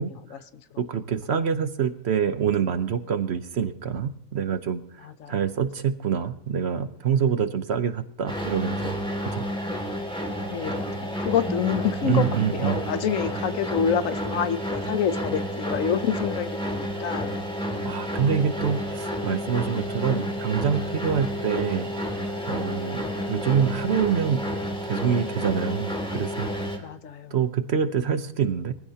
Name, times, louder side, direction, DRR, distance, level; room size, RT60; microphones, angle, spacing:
voice 1, 0.0-0.6 5.0-5.4 10.5-17.4 26.8-27.4, left 8 dB, 65° left, 12 dB, 1.1 m, -28 dB
voice 2, 0.8-4.8 5.3-9.0 9.2-9.4 12.1-12.8 17.8-21.9 22.5-24.4 24.8-26.5 26.8-26.9 27.3-28.7, right 7 dB, 50° right, 11 dB, 1.0 m, -26 dB
sound 1, 8.3-26.8, equal, 5° left, 2.2 m, -30 dB
23.0 x 15.5 x 2.8 m, 0.68 s
omnidirectional pair, 1.5 m